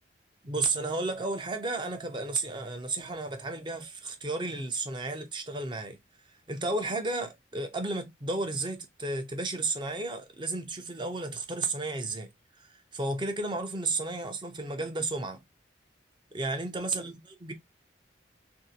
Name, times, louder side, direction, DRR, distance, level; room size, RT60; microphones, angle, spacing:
voice 1, 0.4-6.0 6.5-12.3 12.6-15.4 16.3-17.5, right 2 dB, 25° right, 0.5 m, -33 dB
3.1 x 2.6 x 2.6 m
head